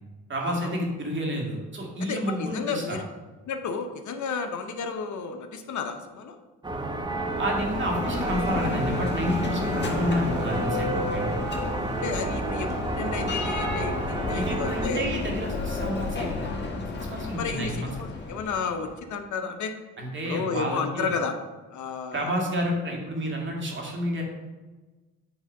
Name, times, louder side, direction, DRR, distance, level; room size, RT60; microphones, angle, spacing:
voice 1, 0.3-3.0 7.4-11.4 14.3-16.6 17.1-17.9 20.0-21.1 22.1-24.3, equal, 35° right, -1 dB, 2.3 m, -30 dB
voice 2, 2.0-3.0 3.5-6.4 12.0-15.0 17.4-19.7 20.2-21.4 21.7-22.3, left 5 dB, 60° left, 7 dB, 0.9 m, -32 dB
sound 1, 6.6-14.9, right 2 dB, 15° right, 0.9 m, -31 dB
Bell, 7.1-19.0, left 3 dB, 30° left, 1.5 m, -32 dB
9.1 x 3.6 x 5.2 m, 1.2 s
cardioid pair, 90°, 33 cm